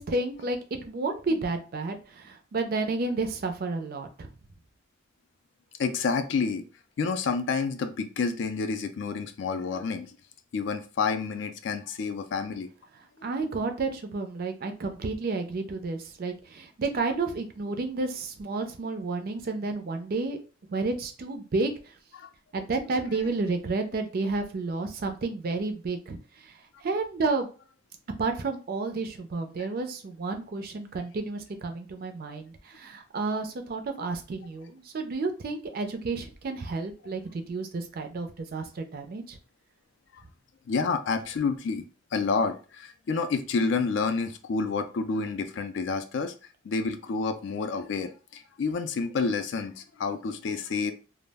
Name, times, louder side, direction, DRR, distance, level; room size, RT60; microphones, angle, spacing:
voice 1, 0.0-4.3 13.2-20.4 20.7-21.9 22.5-27.5 28.2-39.4, right 3 dB, 45° right, 0.4 m, -31 dB
voice 2, 5.8-6.7 7.0-10.2 10.5-12.7 13.2-13.3 22.2-22.3 29.6-29.7 34.0-34.1 40.1-40.2 40.7-41.8 42.1-46.3 46.6-50.9, left 4 dB, 60° left, 0.3 m, -29 dB
2.2 x 2.0 x 3.3 m
head